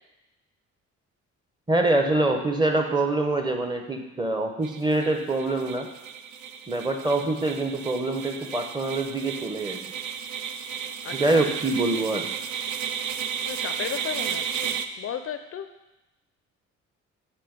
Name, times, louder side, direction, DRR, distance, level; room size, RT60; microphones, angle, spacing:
voice 1, 1.7-5.9 6.7-9.8 11.1-12.4, right 2 dB, 15° right, 4 dB, 0.7 m, -25 dB
sound 1, 4.6-14.9, right 8 dB, 75° right, 0.4 m, -33 dB
voice 2, 11.0-11.4 13.4-15.7, left 9 dB, 50° left, 9 dB, 0.4 m, -35 dB
6.8 x 3.1 x 5.1 m, 0.97 s
cardioid pair, 90°, 30 cm